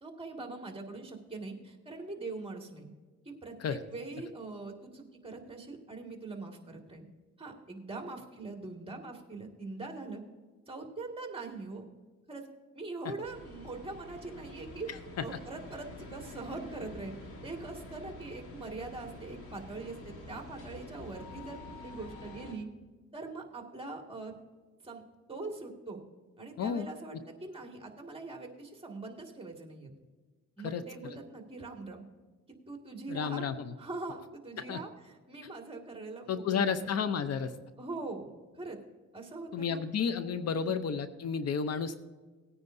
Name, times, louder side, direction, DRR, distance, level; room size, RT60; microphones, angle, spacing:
voice 1, 0.0-2.9 3.3-7.0 7.4-10.2 10.7-11.9 12.3-12.5 12.7-17.1 17.4-22.7 23.1-24.3 24.8-25.0 25.3-26.0 26.4-29.9 30.6-32.0 32.7-33.5 33.8-36.9 37.8-38.8 39.1-39.8 40.5-40.9, right 3 dB, 20° right, 2 dB, 2.1 m, -42 dB
sound 1, 13.2-22.5, left 1 dB, 85° left, 2.9 m, -47 dB
voice 2, 26.6-27.2 30.6-30.8 33.1-33.7 34.6-34.8 36.3-37.5 39.5-41.9, left 6 dB, 55° left, 11 dB, 0.7 m, -32 dB
18.5 x 9.6 x 2.7 m, 1.3 s
cardioid pair, 90°, 30 cm